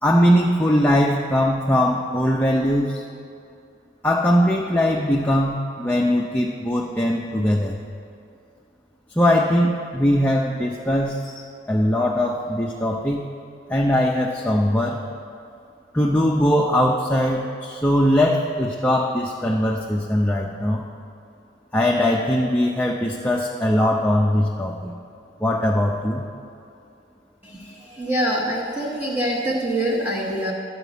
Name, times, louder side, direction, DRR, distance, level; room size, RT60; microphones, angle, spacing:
voice 1, 0.0-3.0 4.0-7.8 9.2-11.3 11.7-13.2 13.7-15.0 15.9-20.8 21.7-24.9 25.4-26.3, left 1 dB, 10° left, -2 dB, 0.5 m, -20 dB
voice 2, 27.4-30.5, right 1 dB, 10° right, -7 dB, 1.1 m, -25 dB
11.5 x 5.0 x 8.0 m, 2.5 s
head